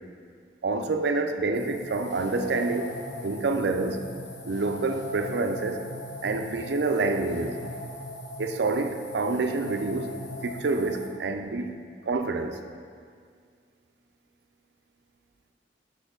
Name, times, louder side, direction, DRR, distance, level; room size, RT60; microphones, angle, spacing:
voice 1, 0.6-3.0 3.2-4.0 4.4-5.8 6.2-7.6 8.4-10.1 10.4-11.7 12.1-12.6, right 3 dB, 65° right, 7 dB, 0.4 m, -27 dB
sound 1, 1.5-11.1, left 1 dB, 80° left, 1.0 m, -39 dB
5.7 x 4.3 x 6.1 m, 2.1 s
head